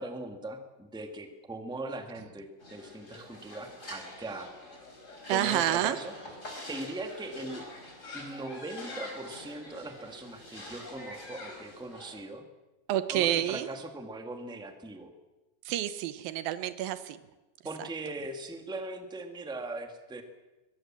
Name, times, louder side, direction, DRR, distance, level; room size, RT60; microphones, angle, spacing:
voice 1, 0.0-4.5 5.3-6.1 6.7-7.6 8.1-12.4 13.1-15.1 17.6-20.2, right 2 dB, ahead, 5 dB, 1.0 m, -40 dB
sound 1, 2.6-12.2, left 1 dB, 20° left, 4.8 m, -45 dB
voice 2, 5.3-6.0 12.9-13.7 15.7-17.2 17.8-17.9, right 12 dB, 90° right, 12 dB, 2.8 m, -29 dB
23.5 x 21.5 x 7.5 m, 1.1 s
omnidirectional pair, 4.0 m